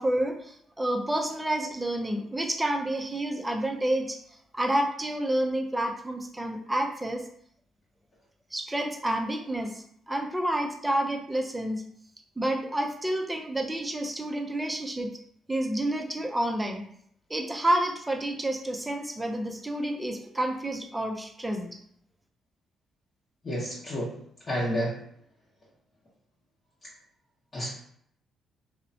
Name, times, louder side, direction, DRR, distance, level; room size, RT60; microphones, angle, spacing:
voice 1, 0.0-4.2 4.5-7.3 8.5-11.8 12.4-15.1 15.5-16.8 17.3-21.8, right 1 dB, 15° right, 3 dB, 0.4 m, -29 dB
voice 2, 23.4-24.1 24.5-25.0 27.5-27.7, equal, 40° left, -8 dB, 0.8 m, -29 dB
2.9 x 2.0 x 2.6 m, 0.67 s
cardioid pair, 90°, 0 cm